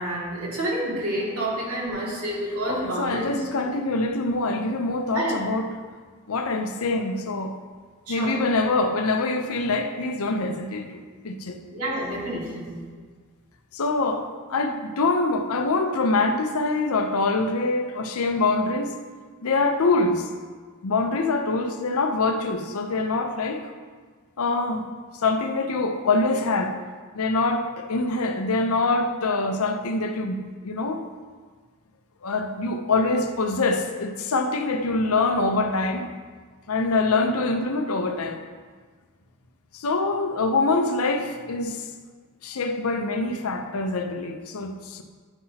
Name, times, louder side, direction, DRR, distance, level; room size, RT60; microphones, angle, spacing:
voice 1, 0.0-3.4 5.1-5.3 8.1-8.3 11.7-12.8, right 1 dB, 90° right, -6 dB, 2.3 m, -29 dB
voice 2, 2.7-5.8 6.3-7.6 8.1-11.6 13.7-18.9 19.4-20.3 20.8-23.7 24.4-24.9 25.2-26.8 27.1-31.0 32.2-36.1 36.7-38.4 39.7-41.9 42.4-45.0, left 3 dB, 85° left, 6 dB, 0.6 m, -24 dB
9.9 x 5.7 x 2.8 m, 1.5 s
head